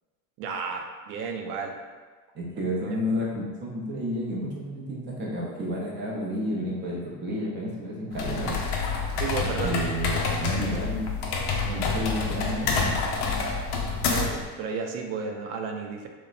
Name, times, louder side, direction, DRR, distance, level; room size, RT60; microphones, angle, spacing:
voice 1, 0.4-1.8 9.2-9.8 14.1-16.1, right 5 dB, 85° right, 3 dB, 0.6 m, -32 dB
voice 2, 2.3-8.6 9.6-11.1 11.5-12.9, equal, 25° right, -3 dB, 0.5 m, -31 dB
sound 1, 8.1-14.5, left 4 dB, 55° left, 0.5 m, -28 dB
3.0 x 2.1 x 2.4 m, 1.4 s
supercardioid pair, 120°, 48 cm